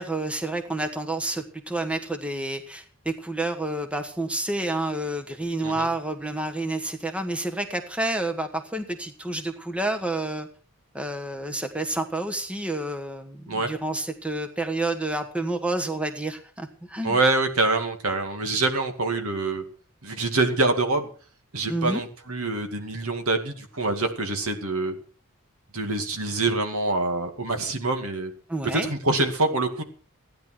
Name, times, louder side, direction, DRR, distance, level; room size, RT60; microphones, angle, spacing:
voice 1, 0.0-10.5 10.9-17.2 21.7-22.0 28.5-28.9, right 2 dB, 5° right, 6 dB, 1.3 m, -29 dB
voice 2, 17.0-19.6 20.0-21.1 21.5-25.0 25.7-28.3 28.7-29.8, right 2 dB, 80° right, 6 dB, 2.3 m, -25 dB
16.0 x 10.5 x 6.0 m, 0.41 s
head